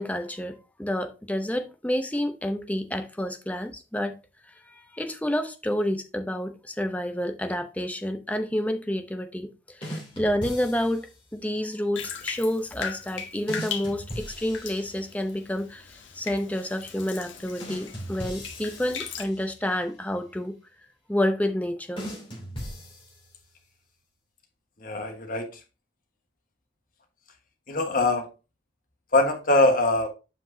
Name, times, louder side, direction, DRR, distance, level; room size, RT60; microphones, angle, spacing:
voice 1, 0.0-4.2 4.6-20.6 21.1-22.1, left 1 dB, 10° left, 0.6 m, -29 dB
sound 1, 9.8-11.2 13.5-15.4 17.6-19.7 22.0-23.6, equal, 25° left, 2.9 m, -39 dB
Bathtub (filling or washing), 12.0-19.2, left 6 dB, 80° left, 1.3 m, -38 dB
voice 2, 24.8-25.5 27.7-28.3 29.1-30.1, left 2 dB, 45° left, 1.3 m, -22 dB
7.5 x 5.9 x 2.7 m
head